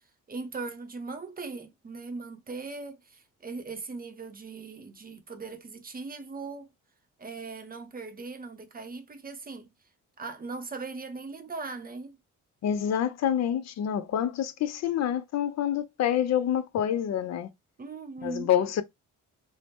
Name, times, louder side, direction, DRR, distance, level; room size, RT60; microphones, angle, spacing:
voice 1, 0.3-6.7 7.2-9.7 10.2-12.2 17.8-18.5, right 4 dB, 30° right, 0.6 m, -39 dB
voice 2, 12.6-17.5 18.2-18.8, left 10 dB, 60° left, 0.4 m, -27 dB
2.6 x 2.0 x 3.3 m
cardioid pair, 85°, 31 cm